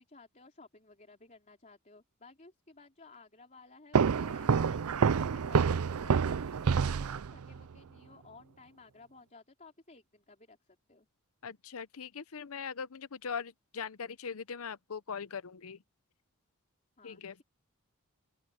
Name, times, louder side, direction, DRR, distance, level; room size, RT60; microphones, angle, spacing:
voice 1, 0.0-11.1 17.0-17.4, left 3 dB, 35° left, 3.5 m, -57 dB
sound 1, 3.9-7.6, right 6 dB, 75° right, 0.5 m, -28 dB
voice 2, 11.4-15.8 17.0-17.4, left 6 dB, 70° left, 0.7 m, -41 dB
open air
head